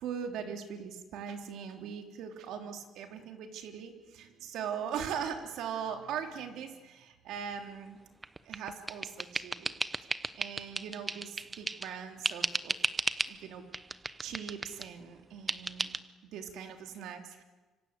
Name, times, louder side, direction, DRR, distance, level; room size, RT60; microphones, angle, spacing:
voice 1, 0.0-8.0 8.4-9.8 10.3-12.8 13.3-13.6 14.2-17.4, right 7 dB, 80° right, 5 dB, 3.4 m, -40 dB
sound 1, 8.2-11.9 12.2-13.4 13.7-14.9 15.5-16.0, right 3 dB, 20° right, 0.9 m, -35 dB
26.0 x 25.5 x 8.3 m, 1.3 s
cardioid pair, 125°, 0 cm